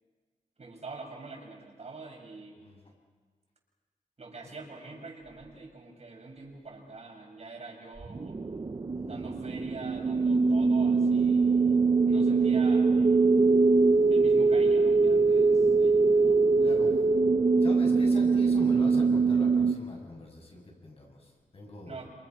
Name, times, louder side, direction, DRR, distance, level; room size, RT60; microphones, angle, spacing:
voice 1, 0.6-2.7 4.2-8.4 9.1-13.2 14.1-16.4 21.9-22.1, right 3 dB, 50° right, 0 dB, 7.1 m, -45 dB
sound 1, 8.0-19.7, right 4 dB, 30° right, 0.7 m, -23 dB
voice 2, 8.9-9.2 16.6-17.0 17.6-22.0, left 1 dB, 45° left, 1 dB, 7.6 m, -44 dB
29.0 x 27.5 x 6.0 m, 1.5 s
wide cardioid pair, 95°, 14 cm